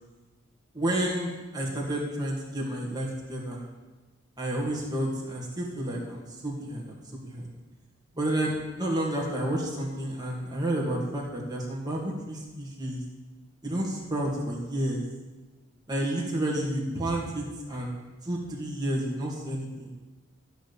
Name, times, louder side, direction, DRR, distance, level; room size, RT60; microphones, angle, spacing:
voice 1, 0.7-3.6 4.4-7.0 7.2-7.5 8.2-13.0 13.6-15.0 15.9-17.9 18.2-19.9, right 1 dB, 20° right, -3 dB, 2.2 m, -30 dB
13.0 x 5.1 x 8.4 m, 1.2 s
head